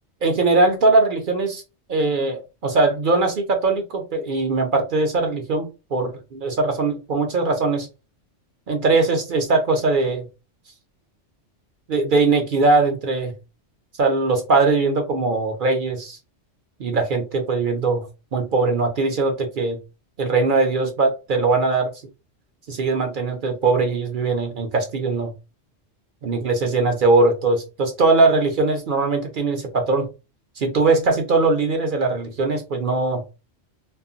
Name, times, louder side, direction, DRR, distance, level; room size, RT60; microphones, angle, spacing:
voice 1, 0.2-1.6 1.9-7.9 8.7-10.3 11.9-13.3 14.0-16.2 16.8-18.1 18.3-19.8 20.2-21.9 22.7-25.3 26.2-30.1 30.6-33.2, right 3 dB, 55° right, 4 dB, 0.7 m, -20 dB
2.4 x 2.0 x 3.7 m, 0.29 s
omnidirectional pair, 1.2 m